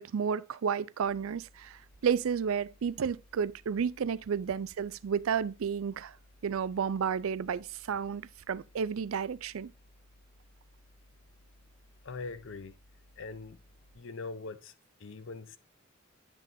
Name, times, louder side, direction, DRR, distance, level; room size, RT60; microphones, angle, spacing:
voice 1, 0.0-6.2 6.4-9.7, right 7 dB, 85° right, 0.4 m, -32 dB
sound 1, 1.0-14.0, equal, 60° right, 2.2 m, -61 dB
voice 2, 12.0-12.7 13.2-13.6 13.9-14.7 15.0-15.6, left 3 dB, 65° left, 0.7 m, -42 dB
9.0 x 6.1 x 2.6 m
head